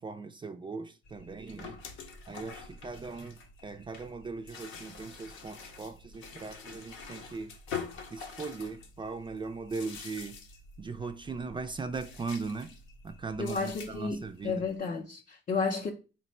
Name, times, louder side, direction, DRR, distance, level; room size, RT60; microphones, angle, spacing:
voice 1, 0.0-1.8 2.3-7.5 8.1-10.4 10.8-12.7 13.0-14.6, right 4 dB, 25° right, 0.3 m, -39 dB
sound 1, 1.0-14.8, left 5 dB, 80° left, 0.7 m, -46 dB
voice 2, 13.4-15.9, left 4 dB, 40° left, 0.5 m, -32 dB
4.3 x 2.1 x 4.2 m
cardioid pair, 90°, 20 cm